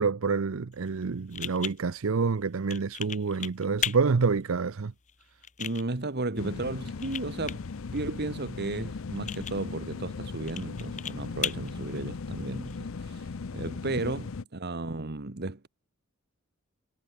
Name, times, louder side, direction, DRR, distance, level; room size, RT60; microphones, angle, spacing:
voice 1, 0.0-4.9, right 5 dB, 70° right, 0.6 m, -27 dB
sound 1, 0.7-12.8, left 9 dB, 35° left, 1.2 m, -40 dB
voice 2, 5.6-7.6 7.9-15.7, right 2 dB, 50° right, 1.3 m, -34 dB
sound 2, 6.4-14.4, left 4 dB, 65° left, 0.6 m, -38 dB
head